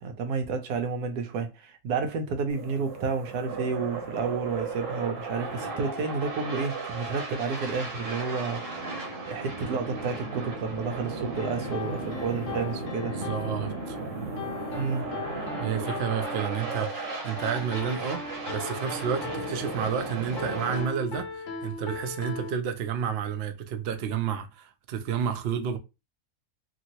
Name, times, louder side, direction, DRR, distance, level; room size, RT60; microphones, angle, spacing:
voice 1, 0.0-8.6 9.3-13.1 14.7-15.1, right 5 dB, 90° right, 1.2 m, -30 dB
sound 1, 2.5-20.8, right 3 dB, 45° right, 0.9 m, -35 dB
sound 2, 11.4-22.5, left 5 dB, 65° left, 0.8 m, -39 dB
voice 2, 13.1-14.0 15.6-18.2 18.5-25.8, right 7 dB, 65° right, 0.6 m, -30 dB
3.0 x 2.7 x 2.9 m
omnidirectional pair, 1.6 m